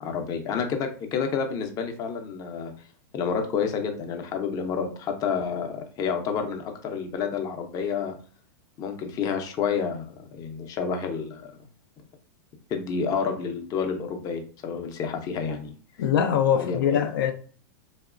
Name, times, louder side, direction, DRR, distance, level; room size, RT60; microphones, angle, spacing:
voice 1, 0.0-2.7 3.1-8.1 8.8-11.5 12.7-15.7 16.5-17.0, left 6 dB, 35° left, 0.5 m, -29 dB
voice 2, 16.0-17.3, left 8 dB, 85° left, 0.4 m, -22 dB
3.0 x 2.0 x 2.4 m
supercardioid pair, 130°, 11 cm